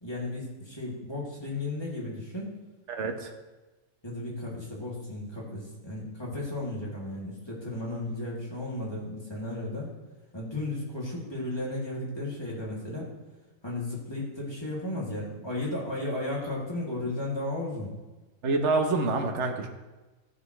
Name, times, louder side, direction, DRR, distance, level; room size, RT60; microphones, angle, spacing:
voice 1, 0.0-2.5 4.0-9.9 10.3-13.1 13.6-17.9, left 2 dB, 20° left, -5 dB, 2.6 m, -34 dB
voice 2, 2.9-3.3 18.4-19.7, right 3 dB, 60° right, 4 dB, 1.3 m, -27 dB
14.5 x 7.8 x 3.2 m, 1.2 s
omnidirectional pair, 1.4 m